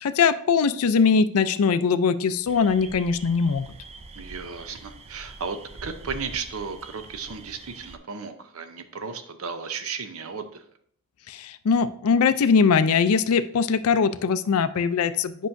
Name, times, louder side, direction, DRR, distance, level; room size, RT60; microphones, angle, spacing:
voice 1, 0.0-3.7 11.3-15.5, left 5 dB, 80° left, 12 dB, 0.4 m, -21 dB
sound 1, 2.5-8.0, right 3 dB, 30° right, 0.4 m, -44 dB
voice 2, 4.2-10.6, right 5 dB, 75° right, 9 dB, 0.7 m, -35 dB
8.3 x 5.5 x 2.6 m, 0.63 s
head